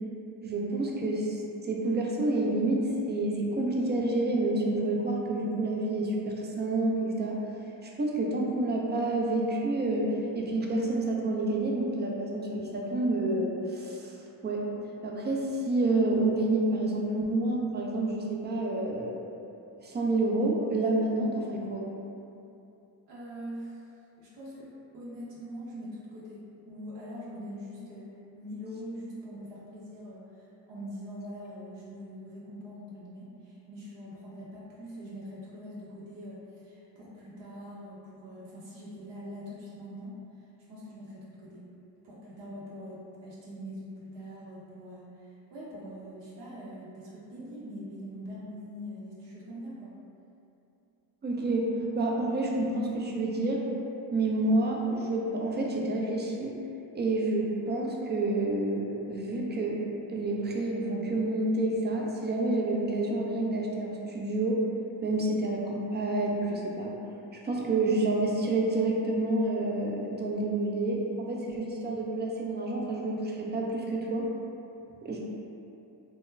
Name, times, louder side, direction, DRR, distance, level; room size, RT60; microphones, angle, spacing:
voice 1, 0.4-7.4 7.8-14.1 14.4-14.6 15.0-19.1 19.8-21.9 51.2-53.6 54.1-56.5 56.9-59.8 60.1-64.6 65.0-66.9 67.3-74.3 75.0-75.2, right 2 dB, 25° right, -2 dB, 0.4 m, -29 dB
voice 2, 23.1-23.8 24.2-30.3 30.7-40.2 40.7-41.6 42.0-49.9, equal, 60° right, -6 dB, 0.7 m, -43 dB
2.2 x 2.1 x 3.1 m, 2.8 s
supercardioid pair, 50°, 49 cm